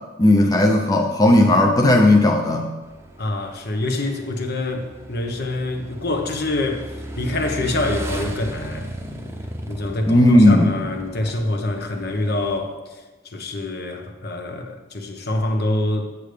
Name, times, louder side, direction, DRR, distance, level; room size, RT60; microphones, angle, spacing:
voice 1, 0.2-2.7 10.1-10.7, left 1 dB, 20° left, 1 dB, 0.6 m, -15 dB
Motorcycle / Engine, 2.8-12.6, right 1 dB, 15° right, 0.8 m, -35 dB
voice 2, 3.2-6.9 7.2-8.9 9.7-13.0 13.2-16.1, left 2 dB, 55° left, 4 dB, 1.2 m, -25 dB
8.6 x 8.0 x 5.1 m, 1.2 s
head